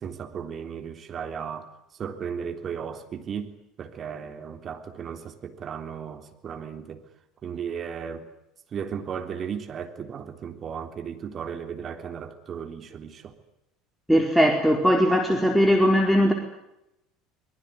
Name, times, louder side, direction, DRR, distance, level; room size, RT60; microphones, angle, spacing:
voice 1, 0.0-1.7 2.0-3.5 3.8-7.0 7.4-8.3 8.7-13.3, right 7 dB, 40° right, 7 dB, 3.5 m, -35 dB
voice 2, 14.1-16.3, equal, ahead, 2 dB, 4.4 m, -19 dB
25.0 x 21.5 x 9.8 m, 0.85 s
figure-of-eight pair, 65°, 0 cm